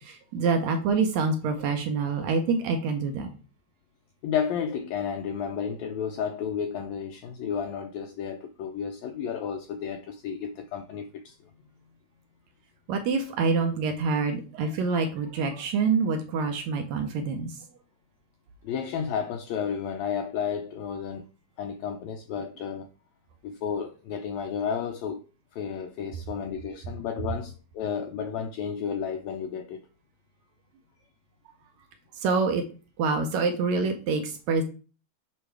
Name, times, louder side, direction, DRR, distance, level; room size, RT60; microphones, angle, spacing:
voice 1, 0.0-3.3 12.9-17.5 32.2-32.6 33.0-34.6, right 4 dB, 75° right, 1.9 m, -26 dB
voice 2, 4.2-11.5 18.6-21.2 21.6-22.9 23.4-25.2 25.5-29.9, left 7 dB, 80° left, 1.6 m, -32 dB
8.4 x 3.0 x 4.6 m
omnidirectional pair, 3.7 m